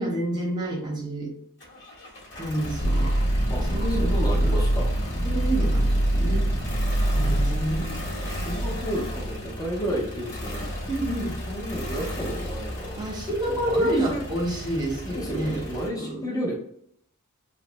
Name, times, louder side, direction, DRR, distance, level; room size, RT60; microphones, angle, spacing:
voice 1, 0.0-1.3 2.4-3.1 3.6-4.5 5.2-5.9 6.1-6.5 7.1-7.9 10.9-11.4 13.0-15.6 15.9-16.3, right 1 dB, 20° right, -1 dB, 0.8 m, -28 dB
sound 1, 1.6-15.9, equal, 55° left, 1.0 m, -34 dB
sound 2, 2.8-8.8, right 1 dB, 75° left, 0.6 m, -24 dB
voice 2, 3.5-4.9 7.1-10.7 11.5-13.0 13.4-14.2 15.0-16.5, equal, 15° left, -4 dB, 0.6 m, -32 dB
3.1 x 2.0 x 3.0 m, 0.68 s
head